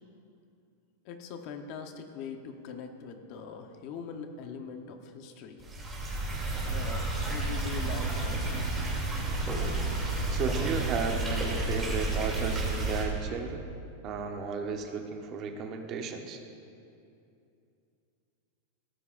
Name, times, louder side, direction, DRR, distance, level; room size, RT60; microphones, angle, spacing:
voice 1, 1.0-5.6 6.6-8.8, left 6 dB, 40° left, 5 dB, 0.9 m, -42 dB
sound 1, 5.6-13.0, right 2 dB, 10° right, 2.7 m, -31 dB
voice 2, 10.3-13.7 14.0-16.4, right 5 dB, 30° right, 4 dB, 0.9 m, -34 dB
17.5 x 14.0 x 2.6 m, 2.6 s
supercardioid pair, 170°, 0 cm